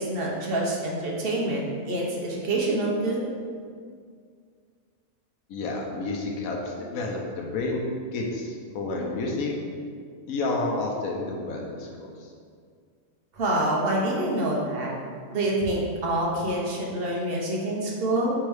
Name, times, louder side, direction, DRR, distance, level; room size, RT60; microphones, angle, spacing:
voice 1, 0.0-3.2 13.3-14.9 15.3-18.3, right 1 dB, 50° right, -3 dB, 0.8 m, -26 dB
voice 2, 5.5-9.5 10.3-12.3, left 2 dB, 85° left, -1 dB, 1.0 m, -30 dB
3.5 x 3.2 x 4.7 m, 2.1 s
omnidirectional pair, 1.4 m